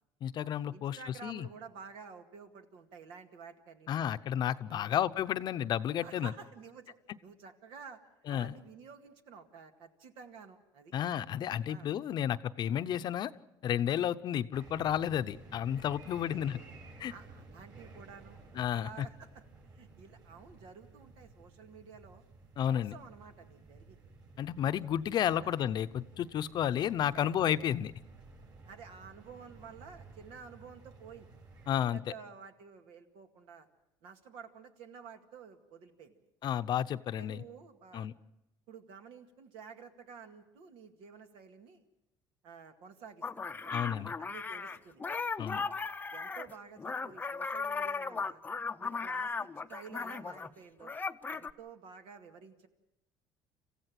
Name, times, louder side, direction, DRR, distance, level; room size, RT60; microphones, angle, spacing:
voice 1, 0.2-1.5 3.9-6.3 8.3-8.5 10.9-13.3 13.6-16.6 17.0-17.1 18.6-19.1 22.6-22.9 24.4-27.9 31.7-32.0 36.4-37.4 37.9-38.1 43.7-44.1 45.4-45.6, left 10 dB, 50° left, 12 dB, 0.8 m, -32 dB
voice 2, 0.7-4.2 4.7-4.9 6.0-7.0 7.2-8.0 8.3-10.9 11.7-11.9 16.3-16.6 17.1-19.4 19.7-22.2 22.6-24.0 24.7-24.8 25.4-25.6 26.8-27.3 28.7-31.3 31.7-33.7 34.0-36.2 37.1-38.1 38.7-41.8 42.4-43.5 43.8-45.0 45.5-45.7 46.1-48.4 48.8-50.9 51.3-52.7, right 6 dB, 75° right, 6 dB, 2.2 m, -51 dB
sound 1, 14.5-31.7, right 3 dB, 45° right, 6.7 m, -54 dB
sound 2, 43.2-50.5 50.8-51.5, left 4 dB, 20° left, 0.7 m, -37 dB
26.5 x 15.5 x 7.7 m, 0.91 s
cardioid pair, 110°, 9 cm